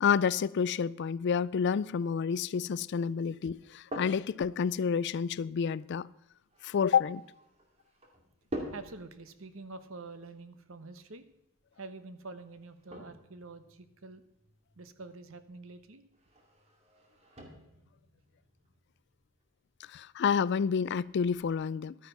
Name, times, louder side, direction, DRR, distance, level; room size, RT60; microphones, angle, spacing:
voice 1, 0.0-6.1 6.6-7.2 19.9-22.0, left 6 dB, 55° left, 0.3 m, -29 dB
sound 1, 3.5-21.5, equal, 30° right, 2.2 m, -49 dB
voice 2, 8.7-11.2 11.8-14.2 14.8-16.0, right 3 dB, 70° right, 1.0 m, -46 dB
12.5 x 9.3 x 5.7 m
head